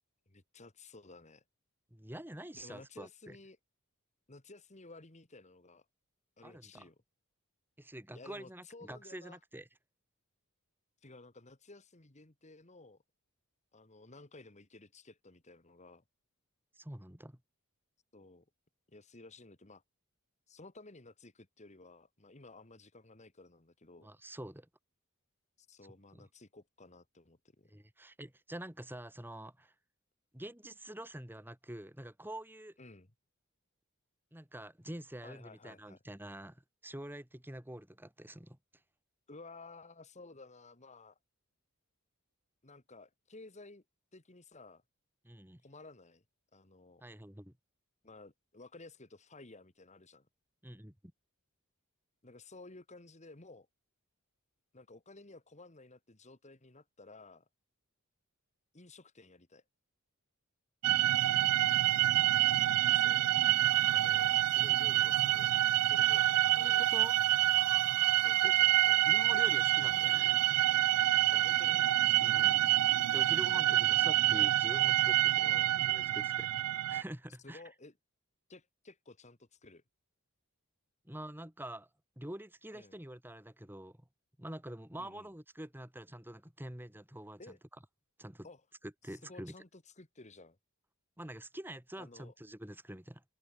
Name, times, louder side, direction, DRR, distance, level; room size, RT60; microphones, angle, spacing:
voice 1, 0.3-1.4 2.5-3.6 4.3-5.9 6.4-7.0 8.1-9.4 11.0-13.0 13.7-16.0 18.1-18.5 18.9-19.8 20.5-24.1 25.6-27.7 32.8-33.1 35.2-36.0 39.3-41.2 42.6-43.8 44.1-44.8 45.6-46.2 46.5-47.0 48.0-50.3 52.2-53.7 54.7-57.5 58.7-59.6 62.9-63.3 63.9-65.5 65.8-66.9 68.2-69.0 71.3-71.9 73.5-74.4 75.4-75.8 77.4-77.9 78.5-79.8 82.7-83.0 85.0-85.3 87.4-87.6 88.4-88.6 89.0-90.6 92.0-92.3, left 2 dB, 30° left, 1.9 m, -54 dB
voice 2, 1.9-3.4 6.4-6.8 7.8-9.7 16.8-17.4 24.0-24.7 26.1-26.3 27.7-29.7 30.3-32.8 34.3-38.6 45.2-45.6 47.0-47.5 50.6-50.9 60.9-61.1 66.6-67.1 68.4-68.5 69.1-70.4 72.2-72.7 73.1-75.5 75.9-76.5 76.9-77.6 81.0-81.9 82.2-84.0 84.4-87.4 88.2-88.5 88.8-89.5 91.2-93.2, right 1 dB, 10° right, 2.6 m, -46 dB
sound 1, 60.8-77.0, right 14 dB, 90° right, 0.4 m, -27 dB
head